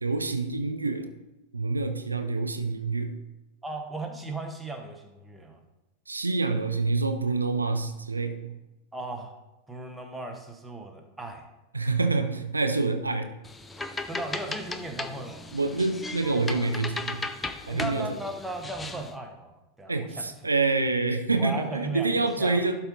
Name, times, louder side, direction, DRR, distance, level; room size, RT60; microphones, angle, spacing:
voice 1, 0.0-1.1 1.5-3.1 6.1-8.5 11.7-13.3 15.5-17.2 17.7-18.2 19.9-22.8, right 3 dB, 80° right, 7 dB, 0.5 m, -27 dB
voice 2, 3.6-5.6 8.9-9.3 9.7-11.5 14.1-15.5 17.7-20.3 21.4-22.7, right 2 dB, 10° right, 3 dB, 1.1 m, -36 dB
sound 1, 13.4-19.1, left 3 dB, 10° left, 0.5 m, -37 dB
11.5 x 4.4 x 3.9 m, 0.98 s
figure-of-eight pair, 90°, 0 cm